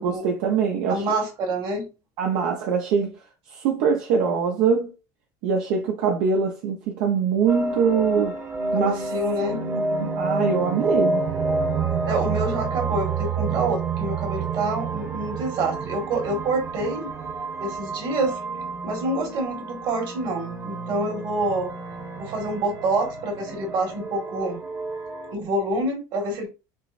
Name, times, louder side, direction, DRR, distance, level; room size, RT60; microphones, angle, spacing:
voice 1, 0.0-1.1 2.2-3.2 3.5-4.9 5.4-8.3 8.7-9.0 9.9-11.2, right 6 dB, 75° right, 0.7 m, -23 dB
voice 2, 0.9-1.8 8.7-9.6 12.0-17.1 17.6-18.4 18.8-21.7 22.2-24.6 25.3-26.5, right 2 dB, 55° right, 1.7 m, -27 dB
sound 1, 7.5-25.3, right 3 dB, 30° right, 1.0 m, -29 dB
5.8 x 2.1 x 2.5 m
supercardioid pair, 120°, 9 cm